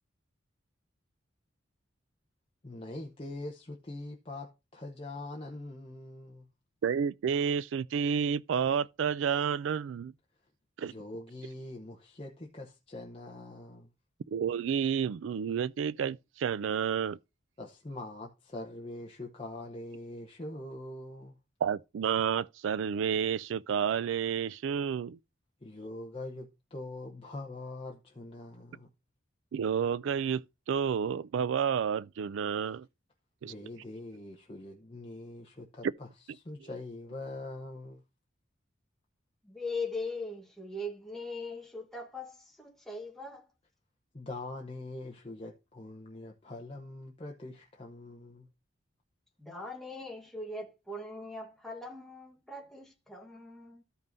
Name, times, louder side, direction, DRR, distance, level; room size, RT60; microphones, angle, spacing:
voice 1, 2.6-6.5 10.8-13.9 17.6-21.4 25.6-28.9 33.4-38.0 44.1-48.5, left 2 dB, 30° left, 0.8 m, -43 dB
voice 2, 6.8-10.1 10.8-10.9 14.3-17.2 21.6-25.2 29.5-32.9 33.4-33.5, right 7 dB, 70° right, 0.3 m, -30 dB
voice 3, 39.4-43.5 49.4-53.8, left 2 dB, ahead, 1.2 m, -40 dB
13.5 x 5.4 x 2.6 m
head